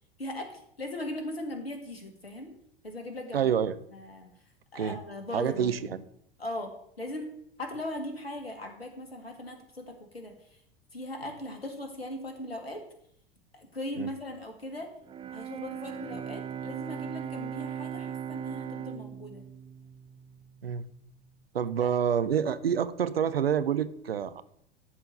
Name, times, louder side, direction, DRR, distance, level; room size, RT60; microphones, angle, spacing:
voice 1, 0.2-2.5 2.8-3.4 3.9-4.3 4.7-5.9 6.4-7.3 7.6-10.6 10.9-12.8 13.5-14.9 15.3-19.4 21.8-21.9, left 1 dB, 85° left, 4 dB, 1.9 m, -39 dB
voice 2, 3.3-3.7 4.7-5.0 5.3-5.8 14.0-14.1 20.6-20.8 21.5-24.4, right 8 dB, 75° right, 14 dB, 0.7 m, -27 dB
Bowed string instrument, 15.0-21.1, right 9 dB, 15° right, 0.5 m, -39 dB
12.5 x 4.6 x 6.5 m, 0.71 s
figure-of-eight pair, 85°, 30 cm